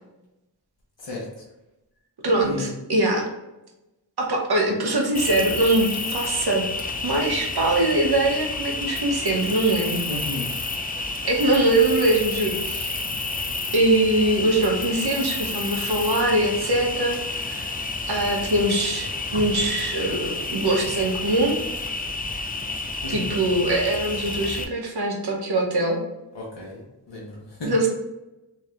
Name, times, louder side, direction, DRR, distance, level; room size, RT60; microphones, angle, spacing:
voice 1, 2.2-3.3 4.2-6.6 7.0-10.0 11.2-12.9 13.7-17.6 18.1-21.6 23.1-26.0 27.6-27.9, right 2 dB, 60° right, 0 dB, 0.9 m, -22 dB
Cricket, 5.1-24.6, left 3 dB, 20° left, 0.4 m, -30 dB
voice 2, 10.0-10.5 23.0-23.4 26.3-26.8 27.1-27.7, left 2 dB, 80° left, -4 dB, 1.0 m, -33 dB
3.1 x 2.8 x 3.4 m, 0.98 s
wide cardioid pair, 60°, 42 cm